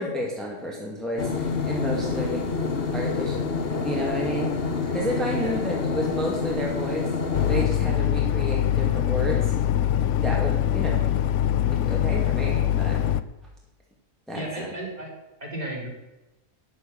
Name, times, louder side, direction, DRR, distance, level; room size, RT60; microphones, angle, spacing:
voice 1, 0.0-2.4 2.9-3.4 3.8-4.6 4.9-7.1 7.5-9.5 10.2-11.0 11.7-13.0 14.3-14.7, equal, ahead, -3 dB, 2.1 m, -31 dB
sound 1, 1.2-7.7, left 4 dB, 40° left, 1.2 m, -27 dB
sound 2, 7.3-13.2, left 11 dB, 65° left, 0.8 m, -23 dB
voice 2, 14.3-15.1 15.4-15.9, right 1 dB, 25° right, -2 dB, 3.5 m, -34 dB
12.5 x 6.7 x 8.8 m, 1.0 s
omnidirectional pair, 1.6 m